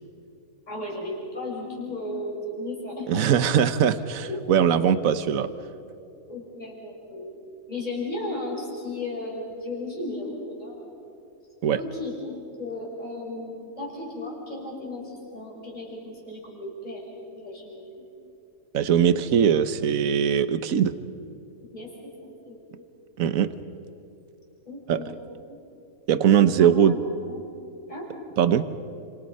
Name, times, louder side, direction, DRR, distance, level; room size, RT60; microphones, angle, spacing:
voice 1, 0.7-3.5 4.3-4.4 5.2-5.3 6.3-7.4 7.7-10.9 11.7-17.0 17.3-17.8 21.7-22.8 24.7-25.1 25.5-25.6 26.6-27.0 27.3-27.4 27.9-28.1, left 2 dB, 30° left, -3 dB, 6.4 m, -35 dB
voice 2, 3.1-5.5 11.6-11.8 18.7-20.9 23.2-23.5 24.9-25.0 26.1-26.9 28.4-28.7, right 8 dB, 75° right, 12 dB, 1.3 m, -21 dB
30.0 x 27.0 x 5.5 m, 2.7 s
omnidirectional pair, 1.5 m